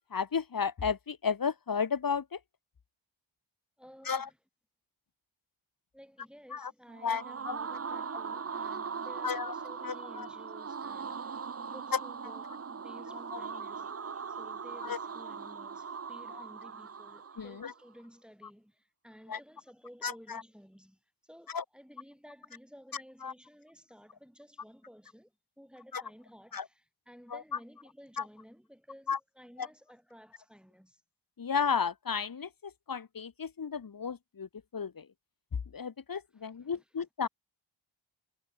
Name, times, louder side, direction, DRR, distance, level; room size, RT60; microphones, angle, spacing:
voice 1, 0.0-2.4 4.1-4.3 6.5-6.7 7.0-7.6 9.2-9.5 9.8-10.3 13.3-13.4 14.8-15.0 17.4-17.7 19.3-19.4 20.0-20.4 21.5-21.6 23.2-23.3 25.9-26.0 26.5-26.6 27.3-27.4 28.2-28.3 29.1-29.2 29.6-29.7 31.4-35.1 35.7-37.3, left 6 dB, 45° left, 1.1 m, -33 dB
voice 2, 3.8-4.4 5.9-13.9 14.3-31.0 36.3-36.8, equal, ahead, 6.6 m, -55 dB
sound 1, 6.9-17.8, right 6 dB, 30° right, 0.7 m, -40 dB
wide cardioid pair, 60°, 47 cm